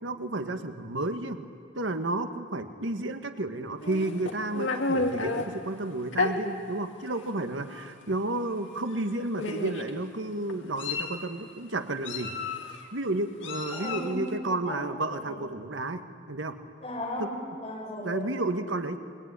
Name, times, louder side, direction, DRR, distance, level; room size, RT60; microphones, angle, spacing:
voice 1, 0.0-1.4 1.7-12.4 12.9-16.6 17.2-17.3 18.0-19.0, right 2 dB, 90° right, 8 dB, 1.7 m, -32 dB
Meow, 3.8-5.5 6.1-6.3 7.2-7.3 7.7-7.9 8.9-9.0 9.4-9.9 10.5-11.2 12.0-12.8 13.4-14.1, left 3 dB, 85° left, 2.6 m, -31 dB
voice 2, 13.7-14.8 15.1-15.4 16.8-18.3, left 1 dB, 35° left, -2 dB, 7.6 m, -36 dB
25.0 x 23.0 x 9.9 m, 2.2 s
head